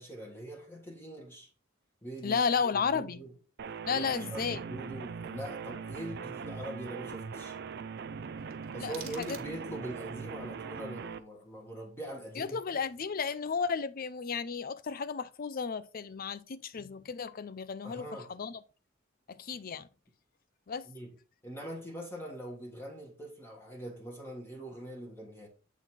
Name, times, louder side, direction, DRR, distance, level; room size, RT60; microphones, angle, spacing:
voice 1, 0.0-1.5 2.0-2.5 2.7-3.3 3.9-7.6 8.7-12.8 17.8-18.3 20.8-21.1 21.4-25.5, right 1 dB, 10° left, 1.5 m, -43 dB
voice 2, 2.2-3.2 3.9-4.6 8.8-9.3 12.4-18.6 19.3-19.9 20.7-20.9, left 6 dB, 45° left, 0.5 m, -33 dB
sound 1, 3.6-11.2, right 5 dB, 55° right, 0.5 m, -41 dB
sound 2, 8.5-9.9, right 8 dB, 90° right, 1.5 m, -49 dB
8.1 x 4.0 x 4.4 m
head